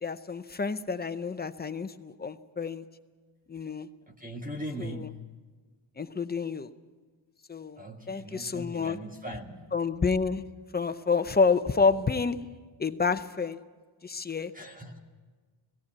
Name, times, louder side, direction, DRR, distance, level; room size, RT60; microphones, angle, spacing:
voice 1, 0.0-2.8 3.5-3.9 4.8-5.1 6.0-6.7 7.5-7.8 8.1-9.0 9.7-10.4 10.7-12.4 12.8-13.6 14.0-14.5, left 4 dB, 20° left, 10 dB, 0.6 m, -28 dB
voice 2, 4.1-5.4 7.8-9.7 14.5-15.0, equal, 15° right, 3 dB, 1.4 m, -40 dB
18.0 x 17.0 x 8.5 m, 1.4 s
cardioid pair, 125°, 49 cm